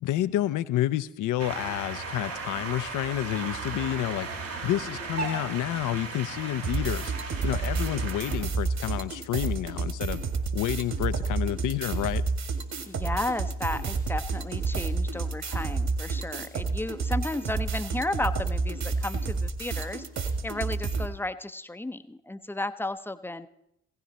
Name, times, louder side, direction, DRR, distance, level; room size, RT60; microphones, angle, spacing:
voice 1, 0.0-4.3 4.6-10.2 10.5-12.2, left 13 dB, 55° left, 13 dB, 0.8 m, -29 dB
sound 1, 1.4-8.3, right 4 dB, 80° right, 4.0 m, -36 dB
sound 2, 6.6-21.1, right 4 dB, 50° right, 2.1 m, -30 dB
voice 2, 12.9-20.0 20.4-23.5, left 2 dB, 5° left, 11 dB, 0.8 m, -33 dB
16.5 x 14.5 x 4.2 m, 0.78 s
hypercardioid pair, 50°, 36 cm